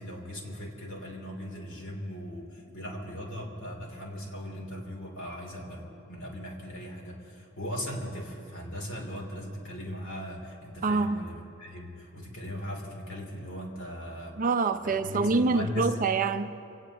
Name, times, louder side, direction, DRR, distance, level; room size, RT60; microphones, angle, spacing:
voice 1, 0.0-14.4 14.8-15.9, equal, 60° left, 3.3 m, -38 dB
voice 2, 10.8-11.3 14.4-16.6, right 4 dB, 40° right, 0.5 m, -26 dB
25.5 x 18.5 x 3.0 m
head